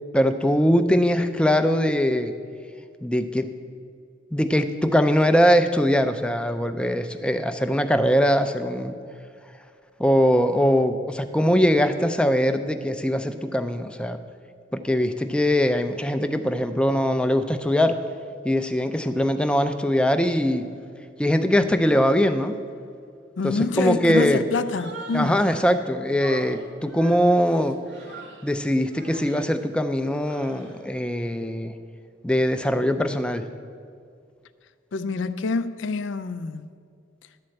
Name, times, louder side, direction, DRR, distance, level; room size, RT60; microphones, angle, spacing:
voice 1, 0.1-2.3 3.0-3.5 4.3-8.9 10.0-14.2 14.7-18.0 18.4-20.7 21.2-22.5 23.4-24.4 25.1-27.8 28.4-31.7 32.2-33.5, equal, 5° left, 0.4 m, -21 dB
voice 2, 23.4-25.4 34.9-36.7, left 4 dB, 85° left, 0.4 m, -27 dB
Human voice, 24.6-25.8 26.2-28.5 28.9-29.5 30.1-30.8, right 2 dB, 85° right, 1.2 m, -41 dB
11.5 x 4.2 x 7.7 m
head